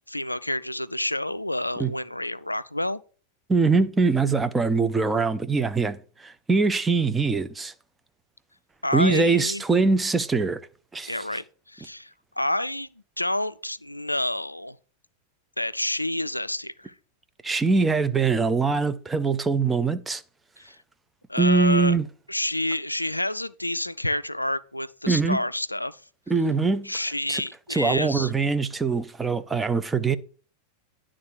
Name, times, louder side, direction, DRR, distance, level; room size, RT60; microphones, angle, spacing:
voice 1, 0.1-3.0 8.8-9.6 11.1-12.9 13.2-14.8 15.6-16.9 20.6-20.8 21.3-21.9 22.3-26.0 26.8-28.3, left 1 dB, 85° left, 0.3 m, -29 dB
voice 2, 3.5-7.7 8.9-10.6 10.9-11.2 17.4-20.2 21.4-22.1 25.1-25.4 26.3-26.9 27.3-27.4 27.7-30.2, right 4 dB, 10° right, 0.6 m, -23 dB
10.5 x 3.7 x 6.4 m
figure-of-eight pair, 90°, 0 cm